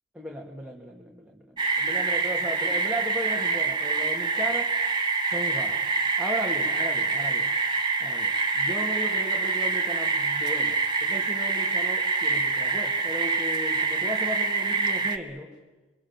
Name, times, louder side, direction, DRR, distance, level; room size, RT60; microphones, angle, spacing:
voice 1, 0.1-4.7 5.3-5.9 6.2-7.5 8.0-15.5, equal, 5° right, -1 dB, 2.8 m, -36 dB
sound 1, 1.6-15.2, right 4 dB, 25° right, 2.3 m, -26 dB
29.5 x 24.5 x 7.6 m, 1.2 s
head